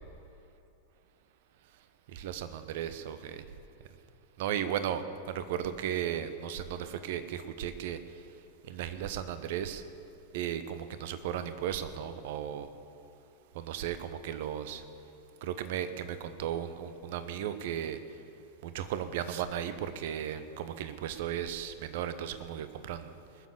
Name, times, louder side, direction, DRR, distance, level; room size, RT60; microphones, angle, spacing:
voice 1, 2.1-3.4 4.4-8.0 8.6-9.8 10.3-12.7 13.5-14.8 15.4-18.0 18.6-23.1, right 10 dB, 50° right, 11 dB, 0.9 m, -35 dB
20.5 x 7.3 x 7.3 m, 2.8 s
figure-of-eight pair, 90°, 0 cm